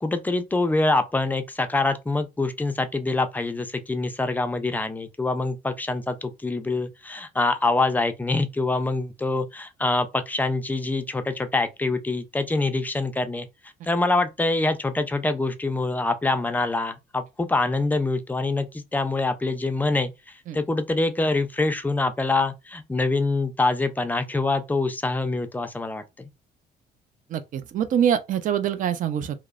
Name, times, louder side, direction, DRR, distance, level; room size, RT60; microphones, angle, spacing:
voice 1, 0.0-13.5 13.8-26.3, left 2 dB, 10° left, 0.4 m, -25 dB
voice 2, 27.3-29.5, right 9 dB, 50° right, 0.5 m, -25 dB
2.9 x 2.0 x 2.3 m
cardioid pair, 110°, 17 cm